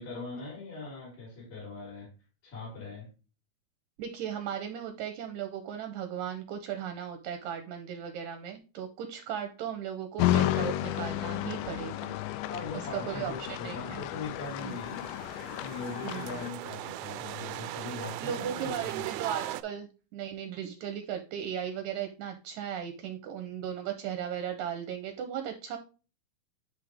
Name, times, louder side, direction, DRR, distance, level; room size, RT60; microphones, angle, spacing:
voice 1, 0.0-2.1 2.4-3.1 12.5-15.1 15.5-19.1, left 3 dB, 70° left, 6.0 m, -41 dB
voice 2, 4.0-12.2 12.7-14.0 14.6-14.8 16.0-16.4 17.6-17.8 18.2-25.8, right 9 dB, 75° right, 1.9 m, -37 dB
sound 1, 10.2-16.5, left 14 dB, 85° left, 1.8 m, -32 dB
sound 2, 14.1-19.6, right 14 dB, 90° right, 2.4 m, -39 dB
9.5 x 3.6 x 3.4 m
omnidirectional pair, 4.2 m